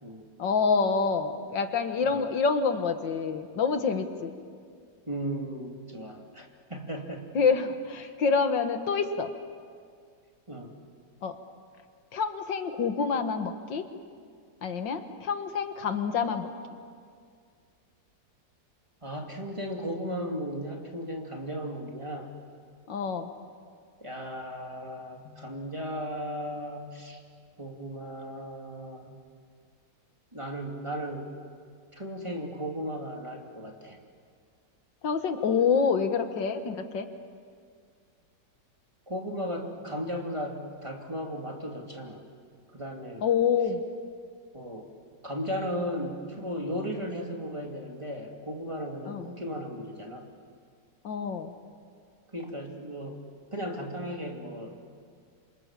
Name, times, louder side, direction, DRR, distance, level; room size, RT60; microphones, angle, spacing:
voice 1, 0.4-4.3 7.4-9.3 11.2-11.3 12.1-13.8 14.6-16.5 22.9-23.3 25.3-25.4 35.0-37.1 43.2-43.8 49.1-49.3 51.0-51.5, left 5 dB, 85° left, 8 dB, 2.1 m, -27 dB
voice 2, 5.1-7.3 8.0-8.1 10.5-10.7 19.0-22.4 24.0-27.2 27.6-29.2 30.3-31.4 31.9-34.0 39.1-42.2 42.7-43.2 44.5-44.9 45.2-50.3 52.3-53.2 53.5-54.8, equal, 15° right, 1 dB, 2.7 m, -36 dB
27.5 x 26.0 x 7.5 m, 2.1 s
omnidirectional pair, 2.0 m